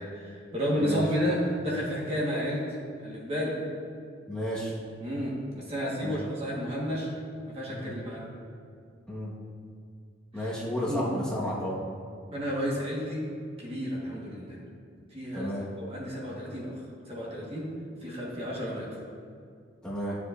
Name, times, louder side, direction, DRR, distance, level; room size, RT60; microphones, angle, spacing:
voice 1, 0.0-2.7 3.0-3.6 5.0-7.1 7.5-8.3 10.3-10.5 10.9-11.1 12.3-13.3 13.6-14.6 15.1-15.5 15.8-17.7 18.0-19.0, equal, 30° right, -5 dB, 1.6 m, -32 dB
voice 2, 4.3-4.7 6.0-6.2 7.7-7.9 9.1-9.3 10.3-11.8 15.3-15.6 18.4-18.5 19.8-20.2, equal, 5° left, -8 dB, 1.6 m, -32 dB
12.5 x 7.0 x 2.6 m, 2.3 s
head